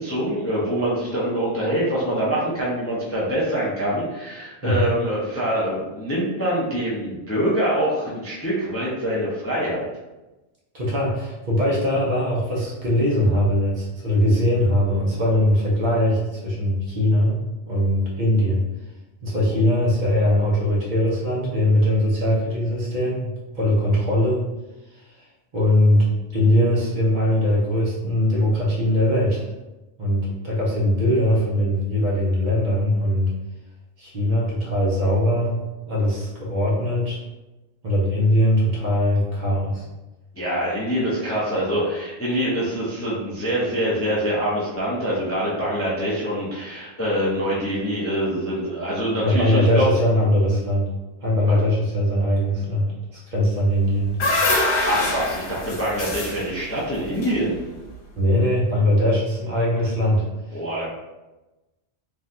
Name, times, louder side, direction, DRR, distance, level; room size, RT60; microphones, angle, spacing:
voice 1, 0.0-9.9 19.5-19.6 40.3-49.9 51.5-51.6 54.9-57.6 60.5-60.9, equal, 20° left, -7 dB, 0.5 m, -25 dB
voice 2, 10.7-17.4 17.7-18.6 19.2-24.4 24.9-25.2 25.5-29.5 30.0-33.3 34.0-37.2 37.8-39.9 49.2-50.9 51.2-54.1 58.2-60.6, left 1 dB, 50° right, -5 dB, 0.8 m, -21 dB
sound 1, 53.7-58.0, left 2 dB, 85° left, 1.0 m, -25 dB
3.3 x 2.3 x 2.6 m, 1.1 s
omnidirectional pair, 1.1 m